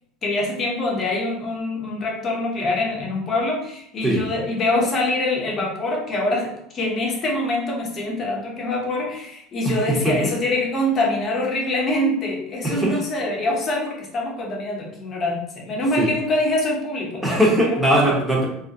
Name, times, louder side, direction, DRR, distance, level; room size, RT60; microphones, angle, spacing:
voice 1, 0.2-17.4 17.8-18.1, left 2 dB, 35° left, -1 dB, 0.7 m, -24 dB
voice 2, 9.6-10.1 12.6-13.0 16.0-16.1 17.2-18.5, right 1 dB, 10° right, -2 dB, 0.7 m, -20 dB
2.4 x 2.1 x 2.7 m, 0.71 s
supercardioid pair, 115°, 0 cm